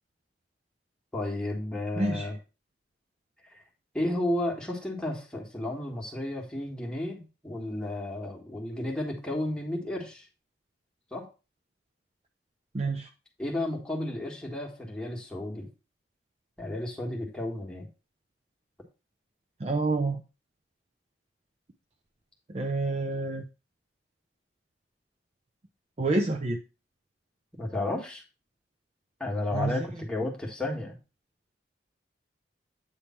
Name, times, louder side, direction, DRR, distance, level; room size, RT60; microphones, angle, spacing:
voice 1, 1.1-2.3 3.9-10.2 11.1-11.2 13.4-15.7 16.6-17.9 27.6-28.2 29.2-30.9, left 1 dB, 5° left, -1 dB, 1.6 m, -32 dB
voice 2, 2.0-2.3 12.7-13.1 19.6-20.2 22.5-23.4 26.0-26.6 29.5-29.8, right 2 dB, 35° right, 4 dB, 0.5 m, -28 dB
8.4 x 3.5 x 4.3 m, 0.30 s
head